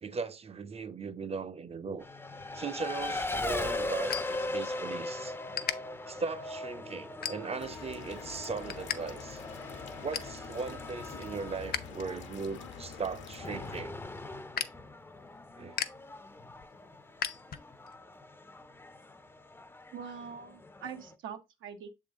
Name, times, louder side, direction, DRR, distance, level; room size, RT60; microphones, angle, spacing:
voice 1, 0.0-2.1 2.5-5.3 6.1-9.4 10.0-14.0 15.6-15.8, right 4 dB, 30° right, 0.6 m, -38 dB
Race car auto racing, 2.0-21.1, left 2 dB, 10° left, 0.6 m, -40 dB
sound 1, 3.0-5.0 5.3-5.8 6.3-6.6 7.1-7.8 8.2-9.0 9.3-9.4 9.7-10.4 10.8-11.8 12.2-18.0, left 8 dB, 50° left, 0.6 m, -39 dB
sound 2, 7.6-13.8, left 6 dB, 70° left, 1.0 m, -47 dB
voice 2, 19.9-21.9, right 7 dB, 80° right, 1.0 m, -43 dB
6.8 x 3.8 x 3.7 m
cardioid pair, 90°, 20 cm